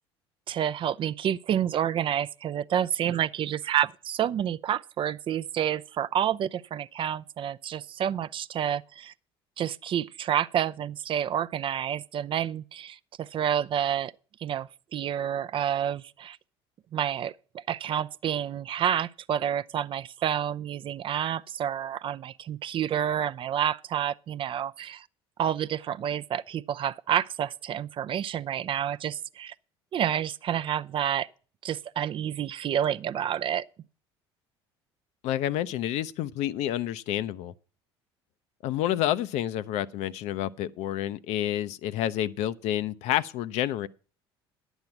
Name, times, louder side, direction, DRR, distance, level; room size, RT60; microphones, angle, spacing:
voice 1, 0.5-9.1 9.6-14.1 14.4-16.4 16.9-25.1 25.4-29.5 29.9-31.3 31.6-33.7, right 10 dB, 40° right, 0.4 m, -29 dB
voice 2, 35.2-37.5 38.6-43.9, left 12 dB, 60° left, 0.6 m, -29 dB
10.5 x 8.1 x 5.9 m
hypercardioid pair, 60°, 13 cm